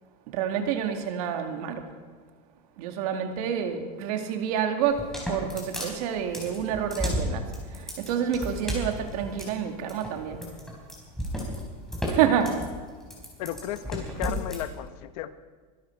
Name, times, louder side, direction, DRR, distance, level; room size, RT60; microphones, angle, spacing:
voice 1, 0.3-1.9 2.8-10.4 12.1-12.6, right 8 dB, 70° right, 5 dB, 2.2 m, -28 dB
sound 1, 4.8-14.6, equal, ahead, 4.2 m, -33 dB
voice 2, 13.4-15.3, left 12 dB, 70° left, 12 dB, 1.1 m, -34 dB
24.0 x 12.5 x 4.6 m, 1.5 s
supercardioid pair, 155°, 20 cm